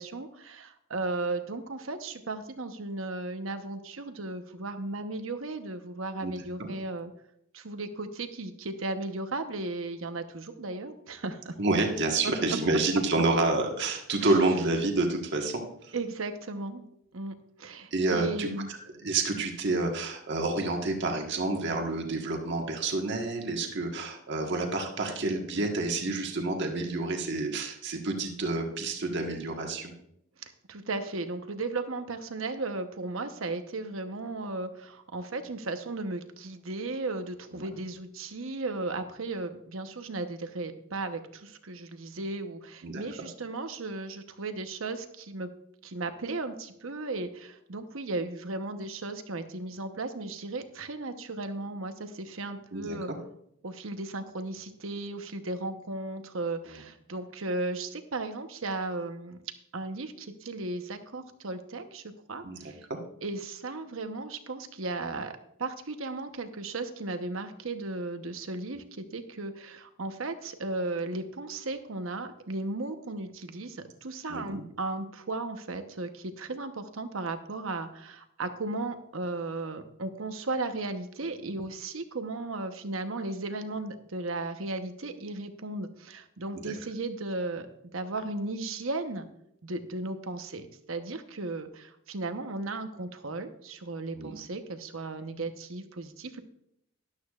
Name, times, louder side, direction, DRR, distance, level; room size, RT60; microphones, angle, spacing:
voice 1, 0.0-7.1 7.5-11.5 12.2-12.3 14.2-14.4 15.9-16.9 17.1-18.7 30.4-45.5 45.8-53.1 53.6-59.4 59.7-62.8 63.2-65.3 65.6-87.7 87.9-89.3 89.6-96.4, right 2 dB, 80° right, 8 dB, 1.0 m, -35 dB
voice 2, 11.6-15.6 17.9-29.9 37.5-37.7 42.8-43.0 52.7-53.2 62.4-63.0 74.3-74.6 86.5-86.7 94.1-94.4, right 2 dB, 60° right, 2 dB, 1.5 m, -29 dB
13.0 x 11.5 x 2.4 m, 0.74 s
head